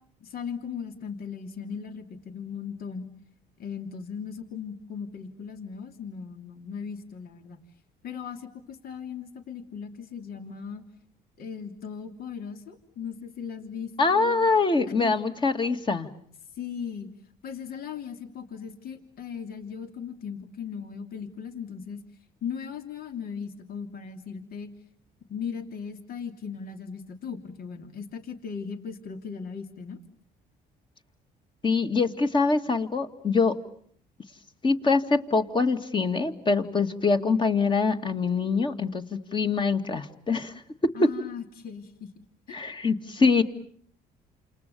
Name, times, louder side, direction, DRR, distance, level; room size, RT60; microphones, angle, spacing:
voice 1, 0.2-3.1 3.6-7.6 8.0-10.8 11.4-14.5 15.0-15.2 16.5-17.1 17.4-22.0 22.4-24.7 25.3-30.0 40.9-42.1 42.5-42.7 43.2-43.4, left 6 dB, 60° left, 7 dB, 3.0 m, -38 dB
voice 2, 14.0-16.1 31.6-33.6 34.6-40.5 40.8-41.1 42.5-43.4, left 4 dB, 30° left, 7 dB, 2.4 m, -24 dB
29.5 x 28.5 x 7.0 m, 0.62 s
cardioid pair, 110°, 17 cm